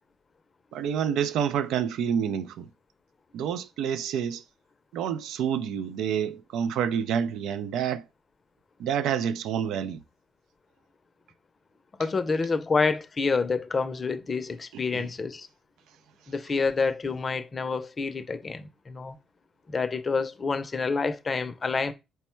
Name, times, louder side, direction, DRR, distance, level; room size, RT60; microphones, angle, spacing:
voice 1, 0.7-2.7 3.3-4.4 4.9-8.0 8.8-10.0 14.9-15.1, right 8 dB, 85° right, 0.3 m, -28 dB
voice 2, 12.0-15.5 16.3-19.2 19.7-21.9, left 4 dB, 35° left, 0.5 m, -28 dB
4.2 x 2.1 x 4.4 m
cardioid pair, 90°, 0 cm